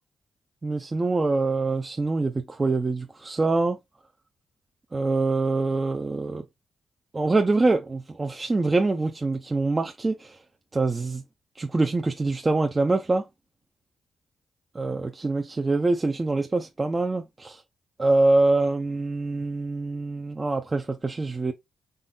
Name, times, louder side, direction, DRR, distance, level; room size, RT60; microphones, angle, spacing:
voice 1, 0.6-3.8 4.9-6.4 7.1-10.4 10.7-11.2 11.6-13.2 14.7-17.6 18.0-21.5, right 3 dB, 30° right, 0.7 m, -24 dB
4.0 x 3.5 x 3.8 m
supercardioid pair, 55°, 0 cm